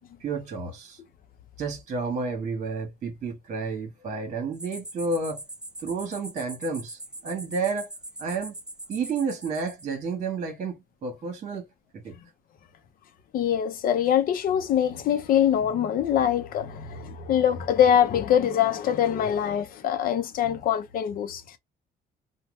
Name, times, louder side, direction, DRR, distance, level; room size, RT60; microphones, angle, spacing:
voice 1, 0.2-1.0 1.6-5.4 5.8-7.9 8.2-8.5 8.9-11.7 12.0-12.1, right 4 dB, 45° right, 1.2 m, -31 dB
sound 1, 4.5-9.8, right 1 dB, 5° right, 0.3 m, -42 dB
voice 2, 13.3-21.6, left 9 dB, 60° left, 0.6 m, -23 dB
2.7 x 2.2 x 3.1 m
cardioid pair, 110°, 17 cm